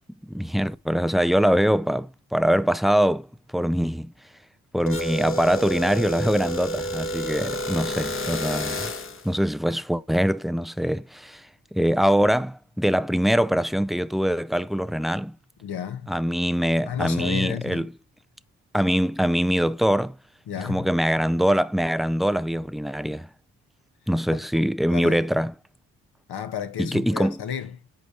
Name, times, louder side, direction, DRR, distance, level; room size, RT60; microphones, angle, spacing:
voice 1, 0.2-3.3 3.5-4.1 4.7-8.9 9.2-11.4 11.7-15.3 16.1-17.9 18.7-20.2 20.6-23.3 24.1-25.5 26.8-27.3, equal, ahead, 0.5 m, -23 dB
sound 1, 4.9-9.3, equal, 30° left, 1.2 m, -30 dB
voice 2, 15.6-16.2 16.8-17.9 20.5-20.9 24.3-24.4 24.9-25.2 26.3-27.8, left 8 dB, 70° left, 1.4 m, -32 dB
8.2 x 5.1 x 5.3 m
supercardioid pair, 55°, 41 cm